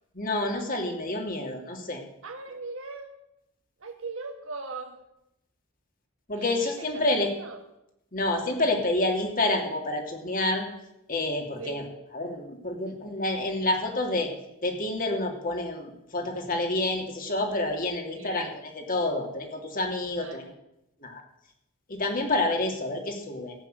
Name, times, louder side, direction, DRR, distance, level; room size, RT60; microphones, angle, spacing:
voice 1, 0.1-2.0 6.3-7.3 8.1-10.7 11.1-11.8 12.1-14.3 14.6-20.4 21.0-21.2 21.9-23.5, left 2 dB, 40° left, 2 dB, 2.7 m, -28 dB
voice 2, 2.2-3.1 3.8-5.0 6.3-7.6 11.6-11.8 18.1-18.5 20.2-20.4, right 3 dB, 70° right, 5 dB, 2.0 m, -40 dB
14.5 x 8.6 x 8.0 m, 0.85 s
head